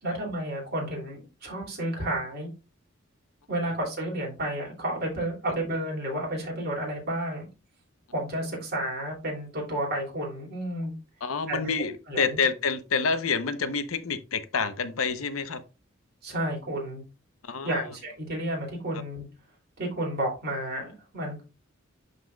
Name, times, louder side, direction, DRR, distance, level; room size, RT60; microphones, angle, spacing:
voice 1, 0.0-2.5 3.5-7.5 8.1-10.9 11.5-11.7 12.1-12.4 16.2-17.0 17.6-19.2 19.8-21.4, right 1 dB, 50° right, -1 dB, 2.9 m, -31 dB
voice 2, 11.2-15.6 17.4-17.8, left 5 dB, 85° left, 10 dB, 0.8 m, -28 dB
11.0 x 4.1 x 2.3 m, 0.30 s
head